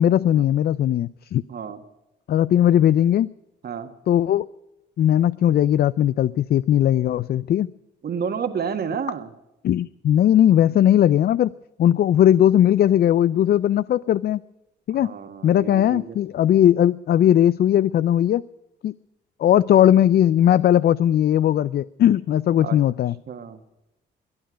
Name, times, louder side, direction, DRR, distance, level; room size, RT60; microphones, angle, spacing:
voice 1, 0.0-1.4 2.3-3.3 4.1-4.5 5.0-7.7 9.6-11.5 11.8-14.4 14.9-15.1 15.4-18.4 18.8-18.9 19.4-23.2, left 11 dB, 55° left, 17 dB, 0.4 m, -18 dB
voice 2, 1.5-1.8 3.6-3.9 8.0-9.3 14.9-16.2 22.6-22.8 23.3-23.6, right 7 dB, 55° right, 8 dB, 1.7 m, -30 dB
22.5 x 9.5 x 5.1 m, 0.93 s
cardioid pair, 90°, 20 cm